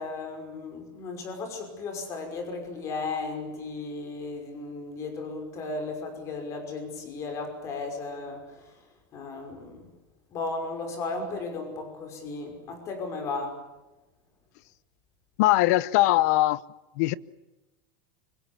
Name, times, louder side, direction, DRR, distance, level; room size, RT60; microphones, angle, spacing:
voice 1, 0.0-8.7 9.1-9.9 10.3-13.5, left 3 dB, 25° left, 5.7 m, -35 dB
voice 2, 15.4-16.6 17.0-17.1, left 17 dB, 55° left, 0.8 m, -21 dB
26.0 x 25.0 x 7.0 m
supercardioid pair, 175°, 11 cm